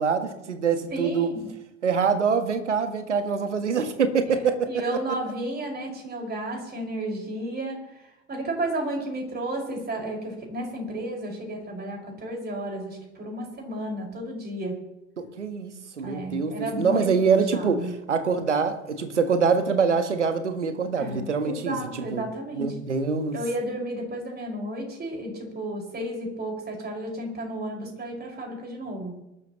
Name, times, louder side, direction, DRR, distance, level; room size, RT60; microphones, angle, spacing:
voice 1, 0.0-1.3 1.8-4.8 15.2-22.2 22.6-23.4, right 5 dB, 85° right, 1.4 m, -25 dB
voice 2, 0.9-1.5 4.7-14.8 16.0-17.1 17.5-18.0 20.9-22.7 23.3-29.1, right 1 dB, 30° right, 5.5 m, -32 dB
24.0 x 12.5 x 3.0 m
figure-of-eight pair, 65°, 35 cm